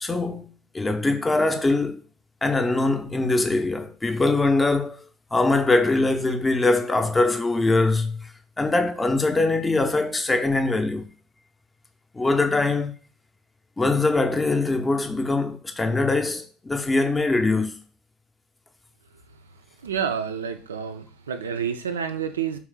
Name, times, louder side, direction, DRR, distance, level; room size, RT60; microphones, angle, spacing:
voice 1, 0.0-2.0 2.4-5.0 5.3-11.1 12.1-12.9 13.8-17.8, left 2 dB, 15° left, 0.5 m, -22 dB
voice 2, 19.8-22.6, right 7 dB, 80° right, 0.4 m, -29 dB
3.1 x 3.1 x 3.6 m
figure-of-eight pair, 65°, 0 cm